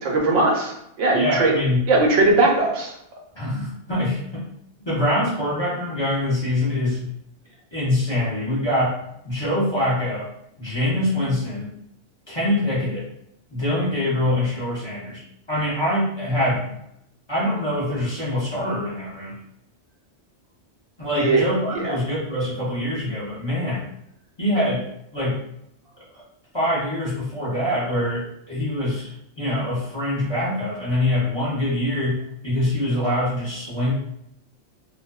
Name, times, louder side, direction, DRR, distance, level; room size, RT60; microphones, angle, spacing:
voice 1, 0.0-1.5 1.9-2.9 21.2-21.4 21.7-22.0, right 2 dB, 85° right, 0 dB, 1.0 m, -19 dB
voice 2, 1.1-1.9 3.3-4.4 4.8-7.1 7.7-10.3 10.6-11.7 12.3-13.0 13.5-15.2 15.5-16.8 17.3-19.4 21.0-23.9 24.4-24.9 25.1-25.4 26.1-26.2 26.5-33.9, left 1 dB, 25° left, -9 dB, 0.7 m, -24 dB
2.6 x 2.1 x 2.2 m, 0.76 s
omnidirectional pair, 1.2 m